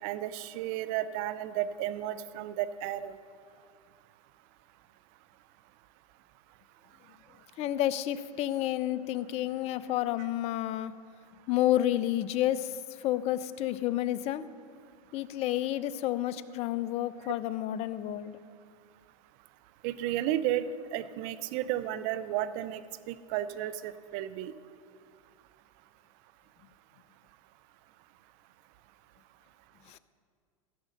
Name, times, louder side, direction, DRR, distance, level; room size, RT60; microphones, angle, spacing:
voice 1, 0.0-3.2 9.8-9.9 19.8-22.8 23.1-24.5, right 12 dB, 50° right, 14 dB, 0.6 m, -33 dB
voice 2, 7.6-10.9 11.5-14.5 15.1-18.4 29.9-30.0, left 13 dB, 35° left, 15 dB, 0.5 m, -30 dB
15.5 x 6.1 x 6.6 m, 2.3 s
hypercardioid pair, 115°, 18 cm